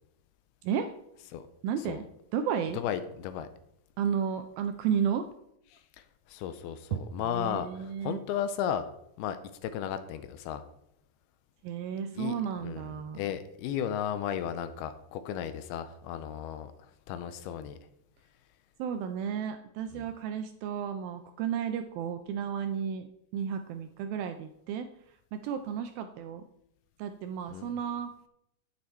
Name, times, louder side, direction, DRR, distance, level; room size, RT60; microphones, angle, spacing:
voice 1, 0.6-0.9 1.6-2.1 2.3-2.8 4.0-5.3 6.9-8.2 11.6-13.2 18.8-23.1 23.3-26.5 27.0-28.1, right 8 dB, 80° right, 8 dB, 2.1 m, -33 dB
voice 2, 2.7-3.5 5.7-8.9 9.2-10.6 12.2-12.4 12.6-16.7 17.1-17.8 19.9-20.0 27.5-27.8, left 9 dB, 80° left, 11 dB, 2.4 m, -35 dB
9.7 x 8.7 x 4.4 m, 0.78 s
omnidirectional pair, 4.7 m